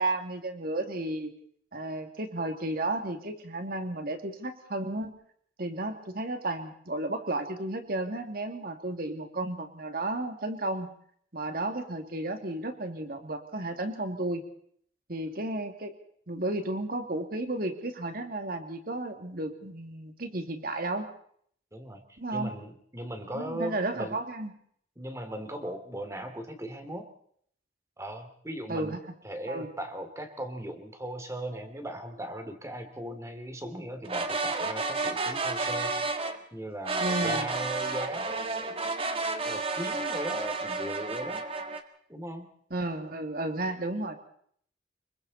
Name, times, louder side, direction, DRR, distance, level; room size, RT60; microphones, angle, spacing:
voice 1, 0.0-1.3 1.7-5.1 5.6-10.9 11.3-14.4 15.1-15.9 16.3-21.1 22.2-22.5 23.3-24.5 28.7-29.0 29.5-29.7 37.0-37.5 42.7-44.1, right 2 dB, 55° right, 6 dB, 2.6 m, -33 dB
voice 2, 21.7-24.2 25.0-27.1 28.0-29.0 29.2-36.0 36.5-38.7 39.4-41.4 42.1-42.5, right 1 dB, 15° right, 7 dB, 2.9 m, -38 dB
sound 1, 34.0-36.4 36.8-41.8, right 3 dB, 35° right, 1.8 m, -31 dB
26.5 x 23.5 x 4.2 m, 0.63 s
head